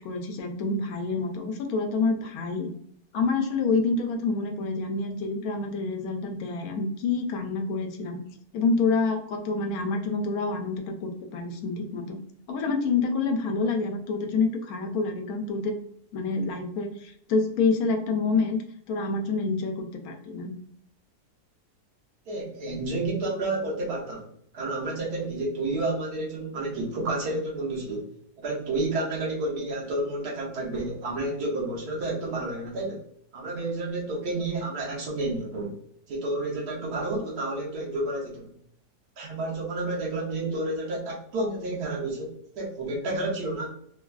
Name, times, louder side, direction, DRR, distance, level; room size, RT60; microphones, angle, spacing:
voice 1, 0.0-2.7 3.1-8.2 8.5-12.2 12.5-15.8 16.1-18.6 18.9-20.5, left 4 dB, 70° left, 4 dB, 1.0 m, -27 dB
voice 2, 22.3-24.3 24.5-28.1 28.4-33.0 33.3-35.7 36.1-38.5 39.2-43.7, right 2 dB, 75° right, -3 dB, 1.3 m, -30 dB
3.3 x 2.3 x 2.3 m, 0.67 s
omnidirectional pair, 1.7 m